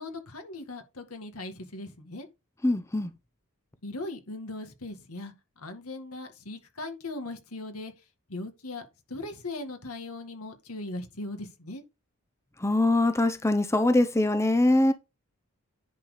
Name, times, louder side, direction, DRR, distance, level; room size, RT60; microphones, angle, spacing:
voice 1, 0.0-2.3 3.8-7.9 8.3-11.8, left 2 dB, 80° left, 2.0 m, -39 dB
voice 2, 2.6-3.1 12.6-14.9, left 2 dB, 15° left, 0.7 m, -23 dB
10.5 x 4.3 x 5.0 m
head